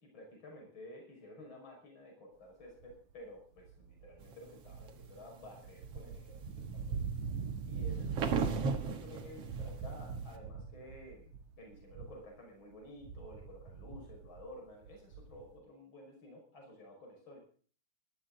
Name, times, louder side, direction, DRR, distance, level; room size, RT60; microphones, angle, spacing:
voice 1, 0.0-7.1 7.7-17.4, left 1 dB, 40° left, 2 dB, 6.2 m, -53 dB
sound 1, 2.8-3.1 3.6-12.4 12.7-15.6, right 6 dB, 75° right, 2.8 m, -43 dB
sound 2, 4.3-5.0 5.5-10.4, right 5 dB, 55° right, 2.3 m, -37 dB
19.0 x 12.5 x 3.9 m, 0.43 s
omnidirectional pair, 3.4 m